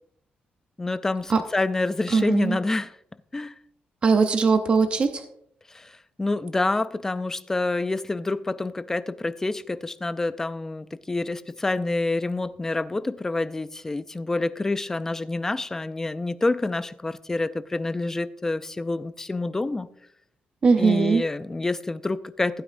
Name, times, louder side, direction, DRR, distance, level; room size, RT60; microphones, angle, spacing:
voice 1, 0.8-3.0 3.3-3.5 5.7-19.9 20.8-22.6, left 2 dB, 15° left, 13 dB, 0.4 m, -27 dB
voice 2, 2.1-2.6 4.0-5.2 20.6-21.2, right 4 dB, 35° right, 7 dB, 0.7 m, -20 dB
15.5 x 9.3 x 2.6 m, 0.71 s
wide cardioid pair, 155°, 3 cm